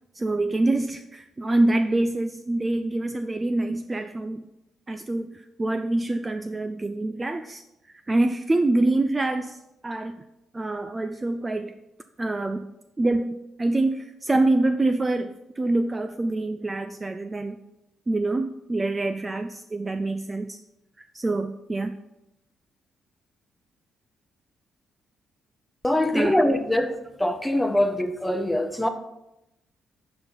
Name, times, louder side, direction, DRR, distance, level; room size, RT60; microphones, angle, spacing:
voice 1, 0.2-4.4 4.9-7.6 8.1-9.6 9.8-10.2 10.5-11.7 12.2-12.7 13.0-17.6 18.1-20.6 21.1-22.0 26.1-26.4, right 2 dB, 20° right, 0.5 m, -25 dB
voice 2, 25.8-28.9, left 1 dB, 5° left, 0.9 m, -23 dB
11.5 x 4.4 x 5.6 m
cardioid pair, 90°, 0 cm